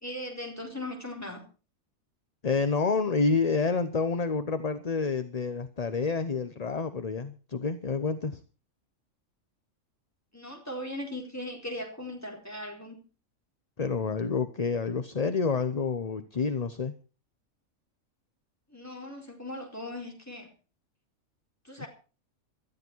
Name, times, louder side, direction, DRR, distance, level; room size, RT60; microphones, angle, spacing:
voice 1, 0.0-1.4 10.3-13.0 18.7-20.5 21.6-21.9, left 1 dB, 10° left, 1 dB, 4.2 m, -38 dB
voice 2, 2.4-8.4 13.8-16.9 21.8-21.9, left 4 dB, 35° left, 10 dB, 0.9 m, -28 dB
18.0 x 13.5 x 4.6 m, 0.37 s
omnidirectional pair, 1.4 m